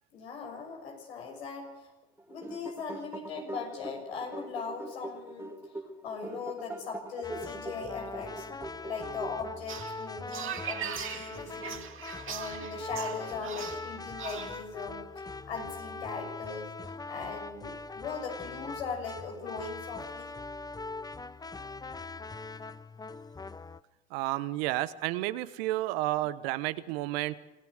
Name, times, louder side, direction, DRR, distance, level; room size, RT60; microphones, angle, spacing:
voice 1, 0.1-1.9 2.3-5.5 6.0-8.5 8.8-16.7 17.1-20.3, left 5 dB, 85° left, 1 dB, 6.4 m, -39 dB
sound 1, 2.2-9.8, right 2 dB, 5° right, 2.7 m, -43 dB
sound 2, 7.2-23.8, left 3 dB, 10° left, 0.7 m, -42 dB
sound 3, 9.7-14.6, right 8 dB, 40° right, 2.2 m, -40 dB
voice 2, 24.1-27.4, right 16 dB, 75° right, 14 dB, 1.1 m, -31 dB
26.5 x 16.0 x 6.5 m, 0.99 s
hypercardioid pair, 75°, 31 cm